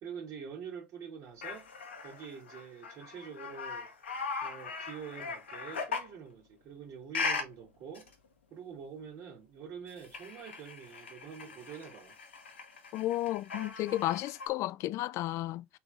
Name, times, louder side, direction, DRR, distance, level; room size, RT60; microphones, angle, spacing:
voice 1, 0.0-1.7 2.0-3.9 4.4-8.1 8.5-12.2, right 7 dB, 55° right, 1.5 m, -46 dB
sound 1, 1.4-6.2 7.1-7.5 7.9-8.1 9.9-14.5, left 4 dB, 85° left, 1.0 m, -39 dB
voice 2, 12.9-15.8, left 15 dB, 55° left, 0.4 m, -33 dB
4.1 x 3.8 x 3.3 m
hypercardioid pair, 65°, 6 cm